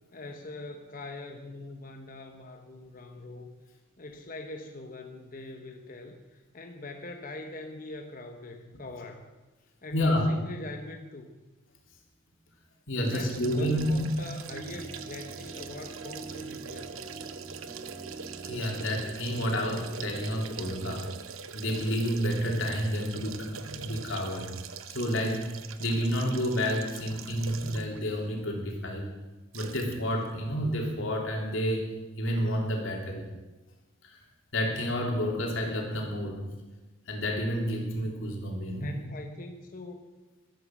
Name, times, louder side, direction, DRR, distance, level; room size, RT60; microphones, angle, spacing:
voice 1, 0.1-3.5 4.0-9.3 9.8-11.4 12.9-16.9 38.8-40.0, left 2 dB, 40° left, 4 dB, 1.1 m, -43 dB
voice 2, 9.9-10.2 12.9-14.1 18.4-21.1 21.5-24.5 24.9-25.5 25.8-29.0 29.5-31.9 32.2-33.2 34.0-34.2 34.5-36.4 37.1-39.0, equal, 70° left, 0 dB, 3.4 m, -30 dB
sound 1, 13.0-28.0 28.4-28.5 29.5-30.0 30.2-30.3, right 6 dB, 80° right, 0.9 m, -43 dB
sound 2, 14.5-21.0, right 3 dB, 30° right, 1.9 m, -44 dB
14.5 x 12.5 x 6.1 m, 1.2 s
head